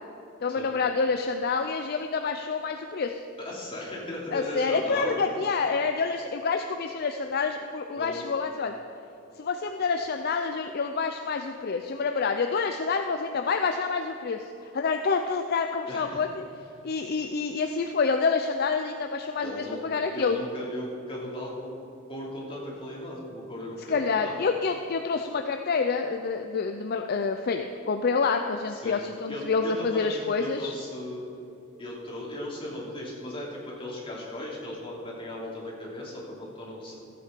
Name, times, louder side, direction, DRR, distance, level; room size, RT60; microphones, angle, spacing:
voice 1, 0.4-3.2 4.3-8.7 9.4-16.4 16.8-20.4 23.9-30.7, left 4 dB, 50° left, 5 dB, 0.5 m, -28 dB
voice 2, 3.4-5.5 7.9-8.2 15.9-16.3 19.4-19.8 20.1-21.8 22.1-24.4 28.7-29.0 29.3-31.3 31.8-36.9, left 1 dB, 25° left, -5 dB, 2.9 m, -37 dB
15.0 x 8.6 x 5.2 m, 2.8 s
head